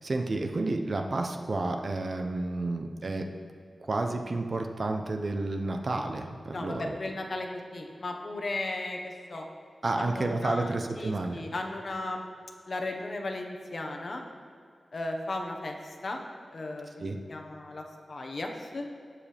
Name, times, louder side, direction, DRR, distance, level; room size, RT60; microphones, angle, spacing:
voice 1, 0.0-3.3 3.8-7.0 9.8-11.4 17.0-17.2, right 2 dB, 45° right, 4 dB, 0.8 m, -31 dB
voice 2, 6.5-9.0 9.3-9.5 9.9-12.2 12.7-14.2 14.9-15.8 16.0-16.2 16.5-16.9 17.3-18.8, left 2 dB, 50° left, 3 dB, 1.2 m, -35 dB
18.5 x 7.5 x 3.5 m, 2.2 s
wide cardioid pair, 130°, 0 cm